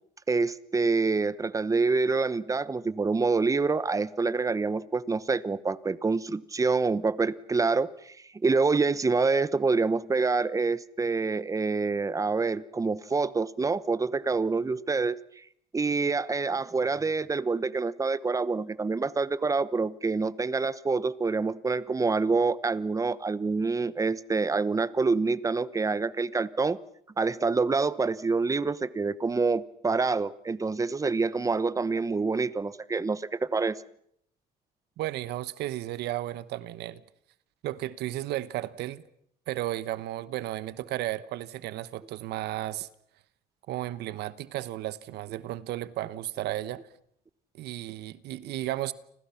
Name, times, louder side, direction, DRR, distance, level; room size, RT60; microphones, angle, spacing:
voice 1, 0.3-8.1 8.4-15.2 15.7-26.8 27.2-33.8, right 4 dB, 20° right, 1.0 m, -26 dB
voice 2, 35.0-37.0 37.6-39.0 39.5-42.9 43.7-46.9 47.5-48.9, right 14 dB, 80° right, 1.2 m, -34 dB
29.5 x 25.5 x 5.8 m
cardioid pair, 110°, 17 cm